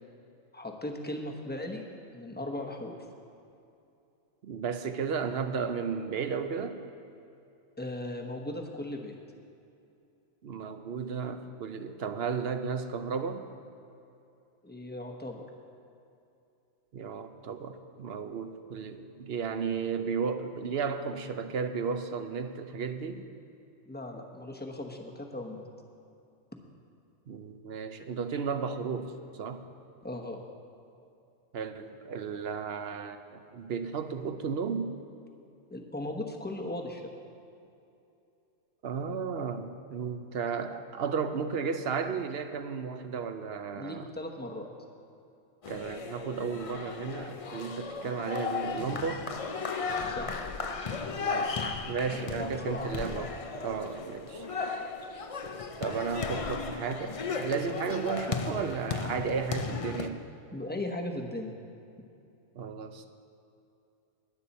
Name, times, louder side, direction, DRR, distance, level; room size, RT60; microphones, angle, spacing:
voice 1, 0.5-1.8 2.1-3.0 7.8-9.2 14.6-15.5 23.9-25.6 30.0-30.4 35.7-37.1 43.7-44.7 50.0-50.4 51.6-51.7 52.1-52.9 60.5-61.5, left 1 dB, 10° left, 1 dB, 1.0 m, -37 dB
voice 2, 4.4-6.8 10.4-13.5 16.9-23.3 27.3-29.6 31.5-35.0 38.8-44.0 45.7-49.3 51.2-54.5 55.8-60.2 62.5-63.1, right 6 dB, 60° right, 9 dB, 0.8 m, -34 dB
sound 1, 45.6-60.1, left 4 dB, 45° left, 0.4 m, -35 dB
20.5 x 8.5 x 4.2 m, 2.7 s
omnidirectional pair, 1.3 m